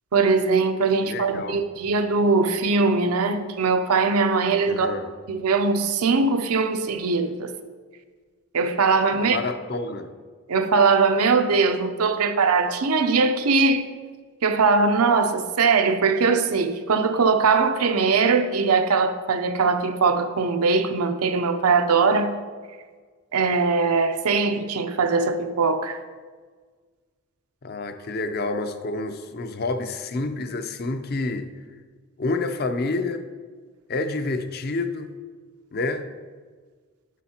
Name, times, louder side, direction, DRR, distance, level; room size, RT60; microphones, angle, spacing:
voice 1, 0.1-4.9 5.3-7.5 8.5-9.4 10.5-13.9 14.4-22.4 23.3-26.0, right 4 dB, 85° right, 0.6 m, -21 dB
voice 2, 1.0-1.6 4.7-5.1 9.1-10.1 27.6-31.5 32.2-33.2 33.9-35.1 35.7-36.1, left 3 dB, 45° left, 0.5 m, -28 dB
8.4 x 8.3 x 2.9 m
head